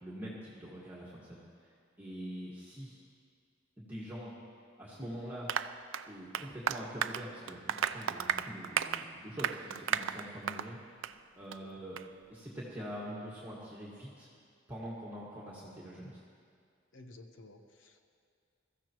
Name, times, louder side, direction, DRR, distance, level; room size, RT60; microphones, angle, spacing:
voice 1, 0.0-3.0 3.8-4.3 4.8-5.5 6.1-11.1 11.3-12.0 12.3-14.3 14.7-16.2, equal, 10° right, -8 dB, 1.8 m, -44 dB
Applause, 5.5-10.7 11.0-11.2 11.5-11.6 12.0-12.1, right 8 dB, 80° right, 0.4 m, -34 dB
voice 2, 16.9-18.0, left 2 dB, 75° left, 5 dB, 1.1 m, -54 dB
22.0 x 14.0 x 3.0 m, 2.3 s
head